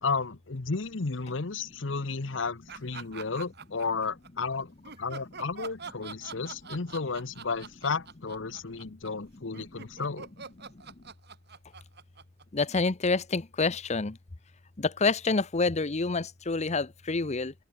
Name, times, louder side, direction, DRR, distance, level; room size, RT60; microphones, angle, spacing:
voice 1, 0.0-4.7 5.0-10.3, left 4 dB, 70° left, 1.0 m, -33 dB
sound 1, 2.7-4.3 4.8-13.1, right 5 dB, 55° right, 2.4 m, -44 dB
voice 2, 12.5-14.2 14.8-17.5, left 3 dB, 35° left, 0.8 m, -27 dB
open air
head